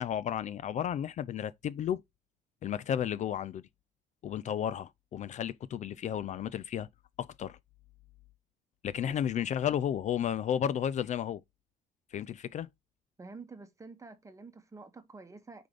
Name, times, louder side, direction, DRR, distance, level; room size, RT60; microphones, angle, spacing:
voice 1, 0.0-2.0 2.6-3.6 4.2-6.9 7.2-7.6 8.8-11.4 12.1-12.7, left 9 dB, 45° left, 0.4 m, -33 dB
voice 2, 13.2-15.7, right 3 dB, 20° right, 1.2 m, -48 dB
5.0 x 3.8 x 4.8 m
cardioid pair, 110°, 17 cm